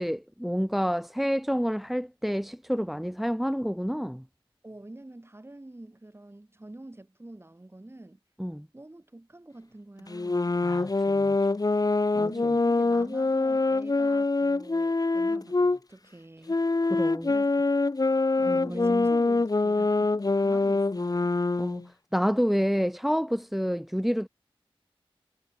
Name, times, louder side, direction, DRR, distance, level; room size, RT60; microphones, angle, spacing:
voice 1, 0.0-4.2 8.4-8.7 10.6-11.4 12.1-12.5 16.9-17.3 18.5-19.1 21.6-24.3, equal, ahead, 1.0 m, -29 dB
voice 2, 4.6-8.2 8.7-10.6 12.3-16.7 17.3-17.6 18.4-21.3, right 1 dB, 25° right, 7.6 m, -47 dB
sound 1, 10.1-15.8 16.5-21.9, left 3 dB, 40° left, 1.3 m, -25 dB
wide cardioid pair, 70°, 9 cm